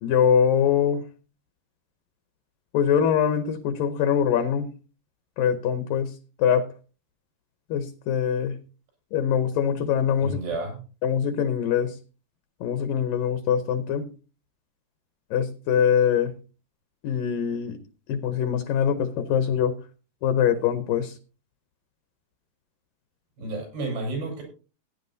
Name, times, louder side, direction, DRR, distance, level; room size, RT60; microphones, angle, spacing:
voice 1, 0.0-1.0 2.7-4.7 5.4-6.1 6.4-6.7 7.7-8.6 9.1-10.4 11.0-11.9 12.6-14.1 15.3-16.3 17.0-17.8 18.1-19.8 20.2-21.2, left 8 dB, 75° left, 9 dB, 2.1 m, -23 dB
voice 2, 10.2-10.8 23.4-24.4, right 2 dB, 90° right, 2 dB, 8.1 m, -31 dB
18.5 x 9.9 x 2.7 m, 0.34 s
omnidirectional pair, 4.7 m